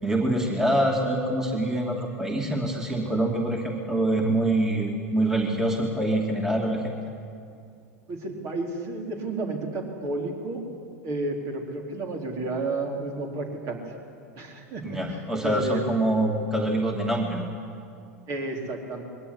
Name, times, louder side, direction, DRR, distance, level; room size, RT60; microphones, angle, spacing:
voice 1, 0.0-6.9 14.8-17.5, right 1 dB, 5° right, 0 dB, 2.6 m, -25 dB
voice 2, 8.1-10.6 11.0-13.8 14.4-15.8 18.3-19.0, right 2 dB, 45° right, 1 dB, 4.1 m, -32 dB
21.5 x 17.0 x 9.8 m, 2.4 s
hypercardioid pair, 95°, 8 cm